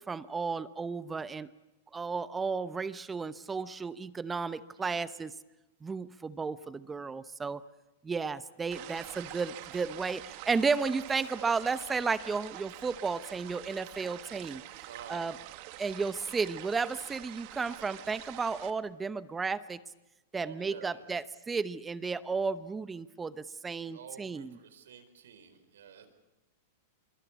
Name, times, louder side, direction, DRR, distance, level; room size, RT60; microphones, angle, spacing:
voice 1, 0.0-1.5 1.9-5.3 5.8-7.6 8.0-14.6 15.1-15.3 15.8-19.8 20.3-24.5, right 4 dB, 15° right, 15 dB, 0.9 m, -33 dB
voice 2, 4.8-5.1 11.1-11.3 14.8-15.4 20.4-21.2 23.7-26.1, right 7 dB, 80° right, 9 dB, 4.7 m, -51 dB
sound 1, 8.7-18.7, right 16 dB, 50° right, 1.7 m, -46 dB
25.5 x 23.0 x 8.5 m, 0.99 s
hypercardioid pair, 130°, 0 cm